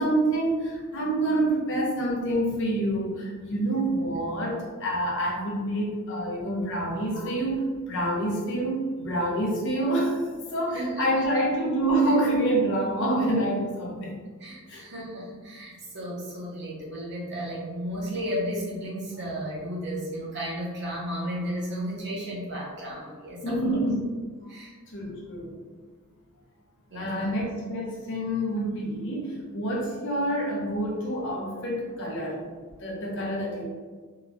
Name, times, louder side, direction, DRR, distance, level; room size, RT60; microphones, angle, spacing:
voice 1, 0.0-10.2 10.5-14.2 14.7-14.8 23.4-24.5 24.9-25.6 26.9-33.6, right 1 dB, 55° left, -3 dB, 0.7 m, -27 dB
voice 2, 10.7-11.3 14.4-23.8 24.5-24.8 26.9-27.3, equal, 50° right, -5 dB, 0.8 m, -34 dB
2.9 x 2.2 x 2.5 m, 1.5 s
head